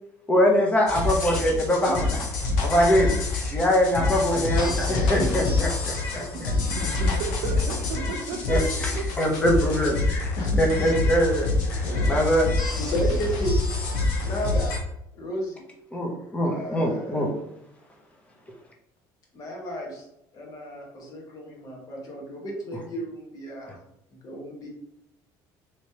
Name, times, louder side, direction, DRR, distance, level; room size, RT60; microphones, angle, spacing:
voice 1, 0.3-2.2 2.6-3.1 3.4-5.7 6.1-6.5 8.5-8.9 9.2-10.3 10.6-12.5 15.9-17.3, equal, 15° left, 0 dB, 0.8 m, -23 dB
sound 1, 0.9-14.8, left 3 dB, 90° left, 0.8 m, -26 dB
voice 2, 3.9-4.4 4.9-5.5 9.5-9.8 10.3-10.9 11.6-12.2 12.8-13.6 14.2-14.7 15.1-15.6 16.4-17.3 19.3-20.0 20.3-23.8 24.1-24.7, equal, 45° left, -1 dB, 1.3 m, -33 dB
voice 3, 6.3-8.6 8.9-9.0, right 4 dB, 70° right, -2 dB, 0.6 m, -34 dB
3.1 x 3.1 x 2.9 m, 0.80 s
cardioid pair, 120°, 9 cm